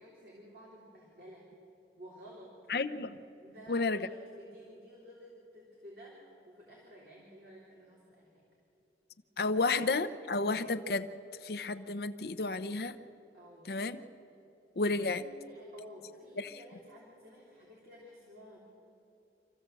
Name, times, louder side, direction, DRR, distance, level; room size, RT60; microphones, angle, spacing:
voice 1, 0.0-1.5 2.0-2.6 3.4-8.4 9.5-9.6 13.3-13.7 15.1-18.6, equal, 55° right, -5 dB, 3.5 m, -53 dB
voice 2, 2.7-3.2 3.7-4.1 9.4-11.1 11.4-13.0 13.7-14.0 14.8-15.2 16.4-16.6, left 3 dB, 60° left, 12 dB, 0.6 m, -31 dB
26.0 x 15.0 x 7.6 m, 2.9 s
head